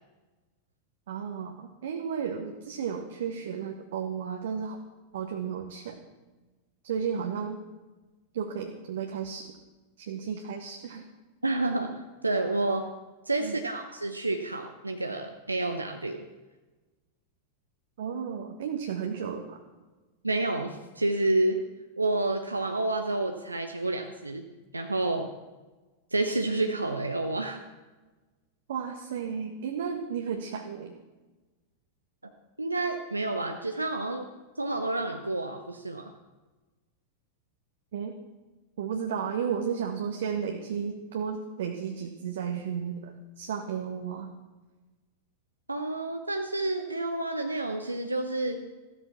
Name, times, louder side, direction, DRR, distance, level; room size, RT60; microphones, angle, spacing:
voice 1, 1.1-4.8 5.1-6.0 6.8-7.6 8.3-9.5 10.0-11.0 13.4-13.6 18.0-19.6 28.7-30.9 37.9-38.1 38.8-44.3, right 7 dB, 60° right, 3 dB, 1.6 m, -33 dB
voice 2, 11.4-12.9 13.3-16.2 20.2-21.6 22.0-24.4 24.7-25.3 26.1-27.6 32.6-34.3 34.6-36.1 45.7-48.6, right 2 dB, 85° right, 4 dB, 1.1 m, -29 dB
15.5 x 13.0 x 6.1 m, 1.2 s
figure-of-eight pair, 90°, 0 cm